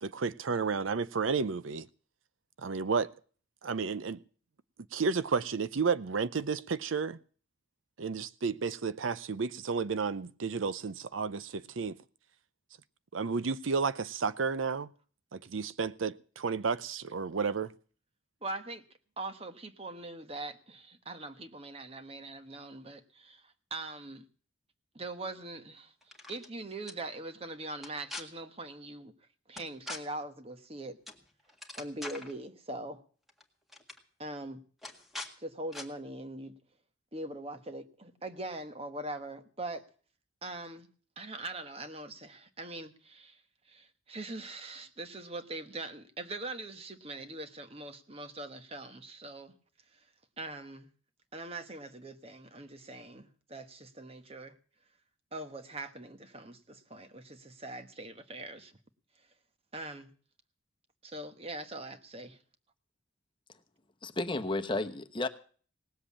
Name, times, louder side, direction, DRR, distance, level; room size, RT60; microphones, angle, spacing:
voice 1, 0.0-1.9 2.6-3.1 3.6-4.2 4.9-7.2 8.0-12.0 13.1-14.9 15.3-17.7, right 5 dB, 80° right, 0.6 m, -32 dB
voice 2, 18.4-18.8 19.2-24.2 24.9-25.9 26.3-29.1 29.5-31.0 31.8-33.0 34.2-34.6 35.4-36.5 37.1-39.8 40.4-40.9 41.2-43.4 43.7-49.5 50.4-50.9 51.3-54.6 55.3-58.7 59.7-60.1 61.0-62.4, right 2 dB, 30° right, 1.3 m, -42 dB
sound 1, 26.0-26.5 26.9-27.0 27.8-28.2 29.6-30.0 31.1-31.2 31.5-32.3 33.3-33.4 33.7-34.0 34.8-35.3 35.7-35.9, left 2 dB, ahead, 1.8 m, -42 dB
voice 3, 64.0-65.3, left 2 dB, 25° left, 1.0 m, -32 dB
18.5 x 7.9 x 8.5 m
head